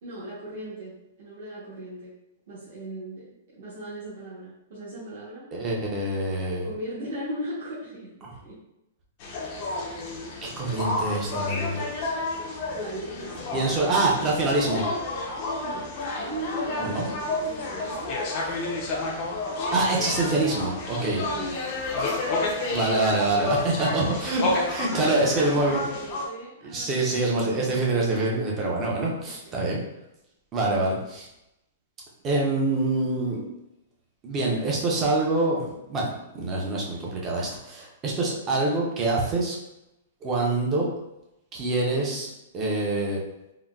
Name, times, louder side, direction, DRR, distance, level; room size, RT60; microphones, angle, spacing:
voice 1, 0.0-2.1 2.5-5.5 6.6-8.6 9.3-9.5 12.7-14.7 15.6-15.9 16.2-18.1 21.1-21.7 22.0-22.1 24.0-24.2 24.8-27.8 28.3-28.7 29.2-29.6 30.7-31.0, right 1 dB, 50° right, -9 dB, 0.9 m, -38 dB
voice 2, 5.5-6.7 10.4-11.8 13.5-14.9 16.8-17.1 19.7-21.2 22.7-25.8 26.6-29.8 30.5-31.2 32.2-33.4 34.2-39.6 40.2-40.9 41.5-42.3 42.5-43.2, right 2 dB, 15° right, -3 dB, 0.5 m, -25 dB
sound 1, 9.2-26.3, left 2 dB, 30° left, 0.5 m, -30 dB
3.7 x 2.1 x 2.2 m, 0.89 s
hypercardioid pair, 170°, 0 cm